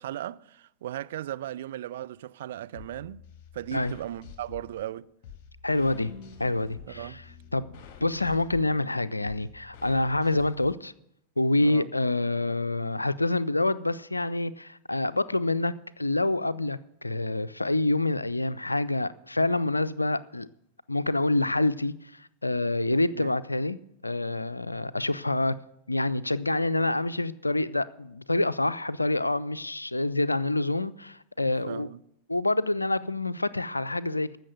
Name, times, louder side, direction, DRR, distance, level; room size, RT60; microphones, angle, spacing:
voice 1, 0.0-3.2 3.5-5.1 6.8-7.2 11.6-11.9 23.1-23.4 31.7-32.0, right 12 dB, 60° right, 0.4 m, -37 dB
sound 1, 2.7-10.7, left 8 dB, 40° left, 1.9 m, -49 dB
voice 2, 5.6-6.1 6.4-7.2 7.5-10.9 11.4-20.5 20.9-23.8 24.0-25.6 25.9-31.9 32.3-34.4, left 2 dB, 85° left, 0.4 m, -27 dB
sound 2, 6.0-9.8, left 2 dB, 80° right, 5.1 m, -53 dB
14.5 x 6.4 x 7.9 m
figure-of-eight pair, 90°, 0 cm